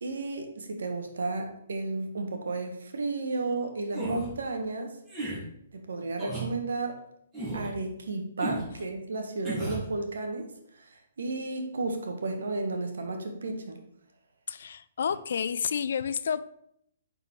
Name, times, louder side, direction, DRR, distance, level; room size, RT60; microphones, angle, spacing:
voice 1, 0.0-5.0 5.7-7.0 7.5-13.8, right 3 dB, 70° right, 5 dB, 1.3 m, -33 dB
sound 1, 3.9-4.3 5.1-5.4 6.2-6.5 7.3-7.7 8.4-8.7 9.4-9.8, right 2 dB, 20° right, 2.9 m, -33 dB
voice 2, 14.5-16.5, left 7 dB, 60° left, 15 dB, 0.4 m, -30 dB
9.1 x 4.2 x 4.4 m, 0.73 s
figure-of-eight pair, 125°, 0 cm